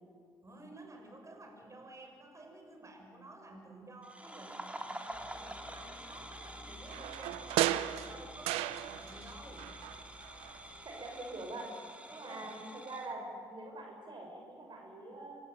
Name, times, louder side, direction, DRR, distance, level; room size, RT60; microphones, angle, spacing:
voice 1, 0.4-9.7 12.1-12.5, right 2 dB, 30° right, 4 dB, 6.7 m, -52 dB
sound 1, 4.0-13.1, right 1 dB, 10° right, 3.1 m, -48 dB
sound 2, 5.1-10.9, left 2 dB, 40° left, 7.9 m, -54 dB
sound 3, 6.9-9.3 9.6-10.7 11.0-11.1, right 15 dB, 80° right, 0.7 m, -35 dB
voice 2, 10.8-11.7 12.1-15.5, right 2 dB, 50° right, 1 dB, 6.1 m, -44 dB
26.5 x 17.0 x 9.6 m, 2.2 s
hypercardioid pair, 45°, 10 cm